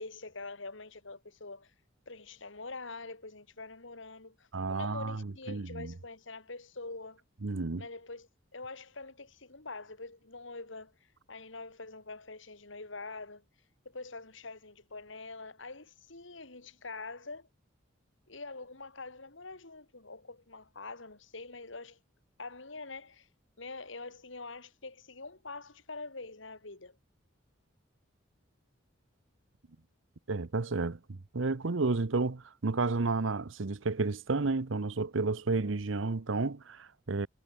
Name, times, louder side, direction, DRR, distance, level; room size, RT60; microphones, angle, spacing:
voice 1, 0.0-1.7 2.1-7.2 7.8-10.9 11.3-13.4 13.8-17.5 18.3-22.0 22.4-23.3 23.6-27.0, left 3 dB, 70° left, 2.8 m, -45 dB
voice 2, 4.5-5.9 7.4-7.8 30.3-37.3, right 3 dB, 75° right, 0.8 m, -31 dB
head